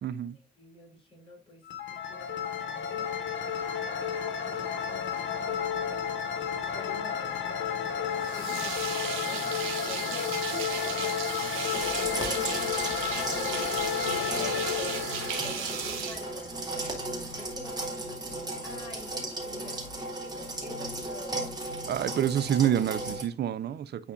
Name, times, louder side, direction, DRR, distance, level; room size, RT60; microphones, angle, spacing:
voice 1, 0.0-0.4 21.9-24.1, right 10 dB, 55° right, 0.6 m, -28 dB
voice 2, 0.6-6.1 6.7-9.5 9.9-11.2 11.5-13.0 13.3-15.1 15.4-17.0 17.4-21.6, left 2 dB, 25° left, 4.1 m, -47 dB
sound 1, 1.7-16.5, left 7 dB, 70° left, 1.4 m, -32 dB
sound 2, 8.2-17.0, right 7 dB, 90° right, 1.5 m, -36 dB
sound 3, 11.7-23.2, right 2 dB, 20° right, 2.2 m, -36 dB
9.9 x 4.2 x 2.5 m
cardioid pair, 90°, 20 cm